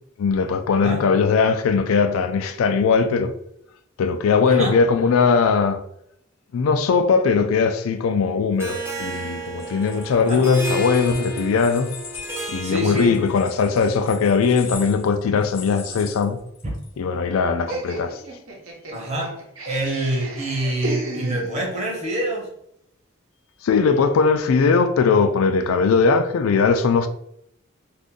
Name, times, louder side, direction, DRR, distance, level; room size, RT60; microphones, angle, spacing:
voice 1, 0.2-3.3 4.0-5.8 6.5-11.9 12.5-16.4 17.0-18.2 23.6-27.1, left 5 dB, 90° left, 0.4 m, -19 dB
voice 2, 4.4-4.8 10.3-10.4 12.6-13.2 16.6-16.7 18.9-19.4 19.6-22.5, right 1 dB, 35° right, 0.9 m, -26 dB
Harp, 8.6-13.6, right 2 dB, 10° right, 0.5 m, -32 dB
sound 1, 9.5-16.9, left 5 dB, 65° left, 0.8 m, -41 dB
Laughter, 17.7-21.9, right 2 dB, 80° right, 0.8 m, -33 dB
2.5 x 2.5 x 3.7 m
head